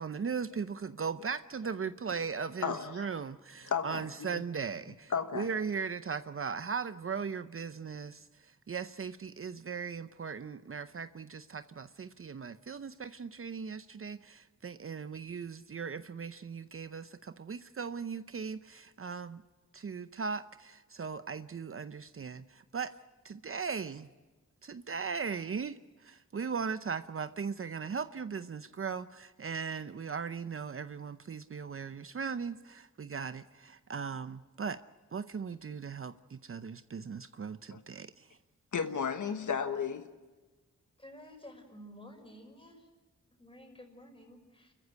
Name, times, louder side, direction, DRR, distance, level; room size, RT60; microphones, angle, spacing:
voice 1, 0.0-19.4 19.7-22.9 23.2-24.1 24.6-34.8 35.1-38.3, right 6 dB, 45° right, 0.7 m, -38 dB
voice 2, 2.6-3.1 3.7-4.4 5.1-5.5 37.7-37.8 38.7-40.1, left 6 dB, 75° left, 1.3 m, -34 dB
voice 3, 41.0-42.9 43.4-44.7, equal, 15° left, 5.6 m, -52 dB
30.0 x 14.5 x 8.1 m
wide cardioid pair, 115°, 31 cm